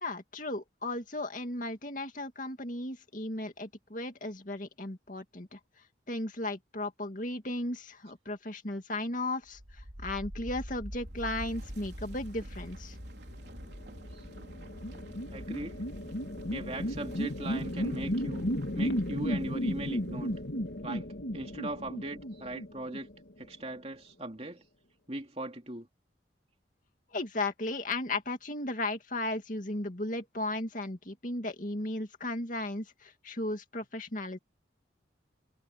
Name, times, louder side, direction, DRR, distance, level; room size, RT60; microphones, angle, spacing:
voice 1, 0.0-5.6 6.1-9.6 10.0-12.9 27.1-34.4, left 2 dB, 45° left, 2.5 m, -35 dB
sound 1, 9.5-20.3, equal, 60° right, 4.4 m, -45 dB
sound 2, 13.7-23.4, equal, 65° left, 2.2 m, -34 dB
voice 2, 15.3-15.8 16.5-18.5 18.7-20.3 20.8-23.1 23.4-24.6 25.1-25.9, right 1 dB, 30° right, 3.0 m, -39 dB
head